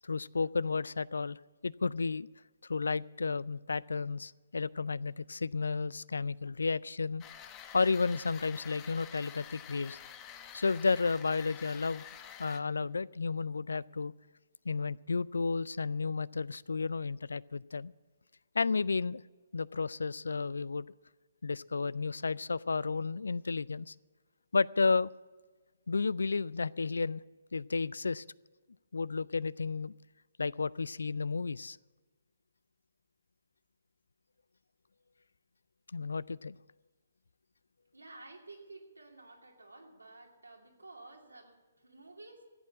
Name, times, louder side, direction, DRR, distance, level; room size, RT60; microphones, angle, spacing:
voice 1, 0.0-2.3 2.7-7.2 7.7-10.0 10.5-12.0 12.4-14.1 14.7-17.9 18.5-19.2 19.5-20.9 21.4-23.9 24.5-25.1 25.9-27.2 27.5-28.2 28.9-29.9 30.4-31.8 35.9-36.6, left 4 dB, 75° left, 23 dB, 0.3 m, -32 dB
sound 1, 7.2-12.6, left 9 dB, 25° left, 1.0 m, -49 dB
voice 2, 37.9-42.5, right 2 dB, 85° right, 1 dB, 2.6 m, -52 dB
14.5 x 8.7 x 8.6 m, 1.3 s
figure-of-eight pair, 135°, 0 cm